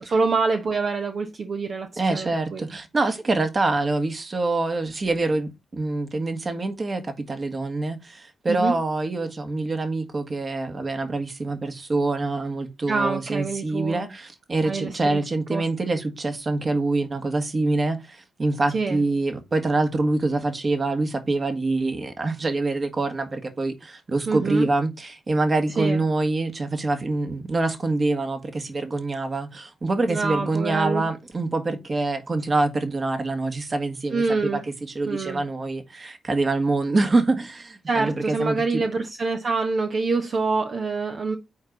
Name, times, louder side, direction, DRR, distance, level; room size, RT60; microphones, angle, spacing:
voice 1, 0.0-2.6 8.5-8.7 12.9-14.1 14.6-15.2 15.5-15.6 18.7-19.0 24.3-24.7 25.8-26.0 30.1-31.0 34.1-34.6 35.1-35.4 37.9-41.4, right 4 dB, 60° right, 1.1 m, -26 dB
voice 2, 2.0-38.8, right 2 dB, 40° right, 1.8 m, -25 dB
8.4 x 4.7 x 4.0 m
supercardioid pair, 50°, 0 cm